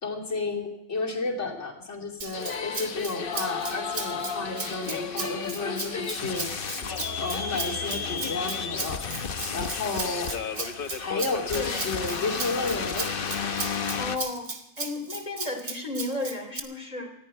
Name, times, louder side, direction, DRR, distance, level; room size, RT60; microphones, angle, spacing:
voice 1, 0.0-6.5 7.2-10.3 11.0-13.3, left 3 dB, 70° left, -1 dB, 3.1 m, -32 dB
Rattle (instrument), 2.2-16.6, right 4 dB, 40° right, 1.4 m, -36 dB
sound 1, 2.3-14.2, left 5 dB, 50° left, 1.1 m, -32 dB
voice 2, 11.5-11.8 14.0-14.5 14.8-17.1, left 2 dB, 30° left, 3 dB, 3.2 m, -33 dB
19.5 x 14.5 x 4.5 m, 0.86 s
omnidirectional pair, 1.3 m